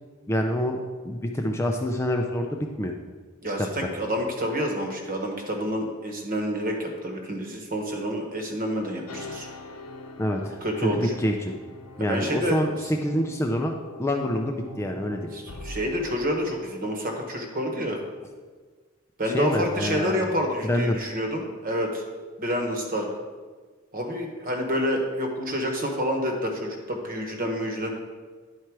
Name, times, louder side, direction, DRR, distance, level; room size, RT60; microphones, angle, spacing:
voice 1, 0.3-2.9 3.6-3.9 10.2-11.5 12.0-13.7 14.0-15.3 19.2-20.2 20.6-21.0, equal, 10° left, 2 dB, 0.4 m, -27 dB
voice 2, 3.4-9.5 10.6-11.1 12.0-12.6 15.3-18.0 19.2-22.0 22.4-23.1 23.9-27.9, equal, 40° right, 2 dB, 1.2 m, -28 dB
sound 1, 9.1-16.1, left 2 dB, 80° left, 0.8 m, -44 dB
10.0 x 4.4 x 4.7 m, 1.5 s
head